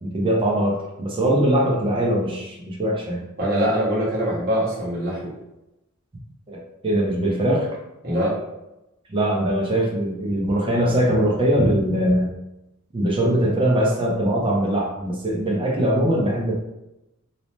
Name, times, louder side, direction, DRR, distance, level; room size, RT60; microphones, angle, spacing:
voice 1, 0.0-3.2 6.5-7.7 9.1-12.3 12.9-16.5, right 1 dB, 25° right, -1 dB, 0.5 m, -21 dB
voice 2, 3.4-5.3 8.0-8.4, equal, 45° right, -7 dB, 1.0 m, -23 dB
2.7 x 2.0 x 3.1 m, 0.93 s
head